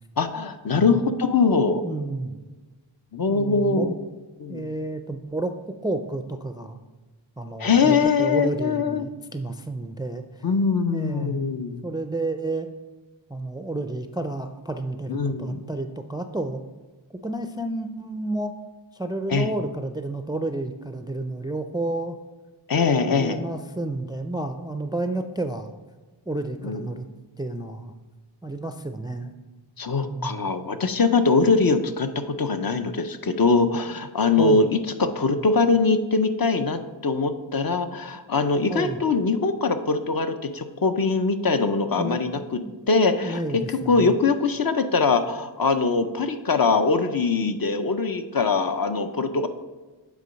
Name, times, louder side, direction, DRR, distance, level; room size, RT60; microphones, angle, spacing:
voice 1, 0.2-1.8 3.1-3.9 4.4-4.7 7.6-9.1 10.4-11.8 15.1-15.7 19.3-19.5 22.7-23.4 26.6-26.8 29.8-42.6 42.9-49.5, left 4 dB, 50° left, 8 dB, 0.6 m, -22 dB
voice 2, 1.8-2.4 3.3-4.0 4.5-6.8 7.4-10.4 10.9-11.5 11.8-12.7 13.3-16.6 17.2-18.5 18.9-22.2 23.0-25.7 26.3-27.1 27.4-27.9 28.4-29.3 30.1-30.5 34.4-34.7 38.7-39.0 42.0-42.7 43.2-44.2, right 2 dB, 10° right, 7 dB, 0.3 m, -31 dB
8.3 x 3.8 x 5.1 m, 1.3 s
wide cardioid pair, 75°, 45 cm